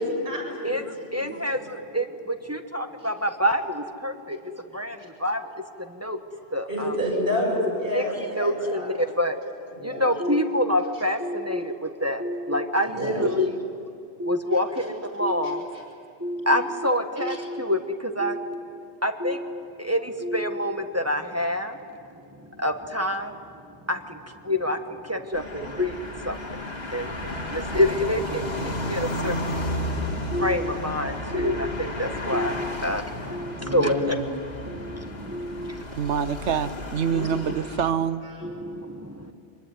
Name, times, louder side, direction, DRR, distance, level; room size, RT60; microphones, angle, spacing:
voice 1, 0.0-0.7 1.0-1.2 6.7-9.1 9.7-10.1 12.9-13.2 14.8-14.9 17.2-17.3 33.6-34.2 35.6-35.8 37.2-37.3 38.2-38.5, left 1 dB, 55° right, -2 dB, 8.1 m, -29 dB
voice 2, 0.6-5.5 5.9-6.2 6.5-7.0 7.9-9.4 9.8-13.8 14.2-15.9 16.2-21.8 22.4-23.4 23.9-34.2 34.6-35.8 37.1-37.6 38.4-39.3, left 1 dB, 15° right, 5 dB, 1.3 m, -27 dB
sound 1, 25.3-37.9, left 1 dB, 60° left, 2.8 m, -33 dB
voice 3, 36.0-38.2, right 7 dB, 80° right, 12 dB, 1.1 m, -26 dB
25.0 x 22.0 x 9.7 m, 2.4 s
omnidirectional pair, 1.2 m